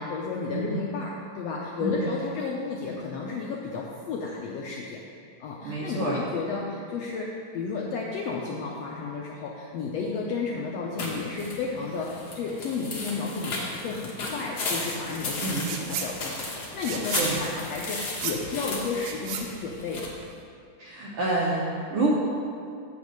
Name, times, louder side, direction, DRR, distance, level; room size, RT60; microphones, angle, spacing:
voice 1, 0.0-5.0 5.4-20.1, left 4 dB, 75° left, -2 dB, 1.5 m, -32 dB
voice 2, 5.6-6.2 15.4-15.6 17.2-17.4 20.8-22.2, right 2 dB, 65° right, -5 dB, 1.5 m, -27 dB
sound 1, 11.0-20.1, left 2 dB, 60° left, 1.0 m, -35 dB
sound 2, 15.5-16.1 16.4-20.4, right 7 dB, 90° right, 2.3 m, -35 dB
8.1 x 5.2 x 6.5 m, 2.4 s
omnidirectional pair, 3.6 m